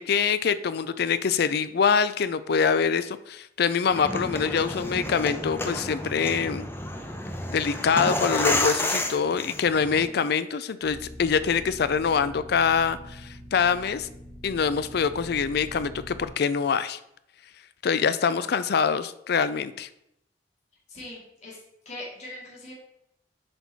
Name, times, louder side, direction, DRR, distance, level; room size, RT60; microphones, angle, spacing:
voice 1, 0.0-6.7 7.5-14.1 14.4-17.0 17.8-19.9, left 6 dB, 60° left, 14 dB, 0.4 m, -24 dB
sound 1, 3.9-10.0, left 1 dB, 15° left, 0.8 m, -30 dB
sound 2, 10.8-16.3, equal, 5° right, 2.4 m, -44 dB
voice 2, 18.3-18.6 20.9-21.6 21.9-22.7, left 1 dB, 40° left, -6 dB, 2.4 m, -42 dB
7.7 x 4.5 x 4.1 m, 0.78 s
head